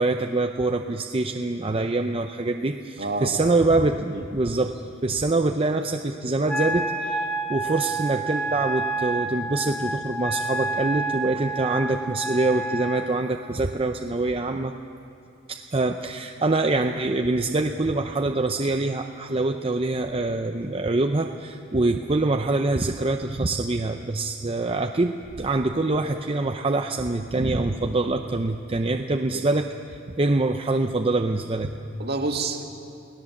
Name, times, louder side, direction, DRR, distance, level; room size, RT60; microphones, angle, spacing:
voice 1, 0.0-14.7 15.5-31.9, right 2 dB, 30° right, 4 dB, 0.6 m, -25 dB
voice 2, 3.0-3.5 4.1-4.3 29.3-29.4 32.0-32.6, right 3 dB, 50° right, 3 dB, 2.0 m, -28 dB
Wind instrument woodwind instrument, 6.5-13.1, right 2 dB, 5° left, 1.0 m, -29 dB
25.0 x 17.5 x 7.3 m, 2.8 s
head